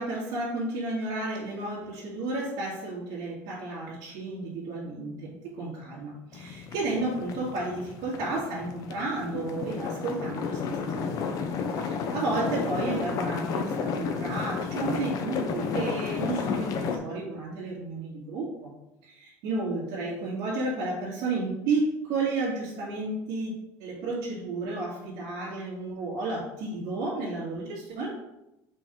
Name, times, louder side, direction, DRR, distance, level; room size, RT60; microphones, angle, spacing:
voice 1, 0.0-18.7 19.0-23.5 23.8-28.2, right 2 dB, 65° right, -10 dB, 2.3 m, -32 dB
sound 1, 6.3-17.0, left 5 dB, 50° left, 0.8 m, -32 dB
5.9 x 4.6 x 3.8 m, 0.90 s
cardioid pair, 130°, 8 cm